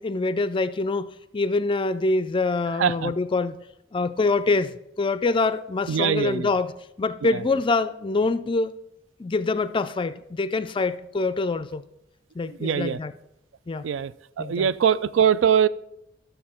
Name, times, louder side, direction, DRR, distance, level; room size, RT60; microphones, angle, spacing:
voice 1, 0.0-3.6 3.9-6.7 7.0-8.8 9.2-11.8 12.4-13.1 13.7-13.9 14.4-14.7, left 3 dB, 25° left, 14 dB, 0.4 m, -25 dB
voice 2, 2.8-3.1 5.9-6.5 7.2-7.4 12.5-13.0 13.8-14.1 14.4-15.7, right 8 dB, 80° right, 16 dB, 0.4 m, -22 dB
12.5 x 6.7 x 4.3 m, 0.82 s
head